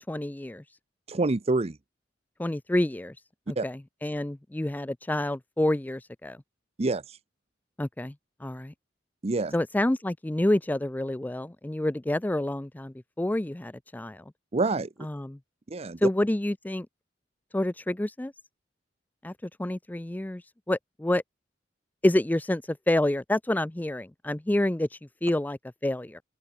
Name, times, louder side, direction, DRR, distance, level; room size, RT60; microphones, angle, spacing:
voice 1, 0.1-0.6 2.4-3.2 3.5-6.4 7.8-8.1 8.4-8.7 9.5-14.2 15.0-15.4 16.0-16.9 17.5-18.3 19.2-21.2 22.0-26.2, left 1 dB, 10° left, 0.4 m, -28 dB
voice 2, 1.1-1.8 3.6-3.7 6.8-7.2 9.2-9.5 14.5-14.9 15.7-16.1, right 3 dB, 35° right, 0.7 m, -27 dB
open air
head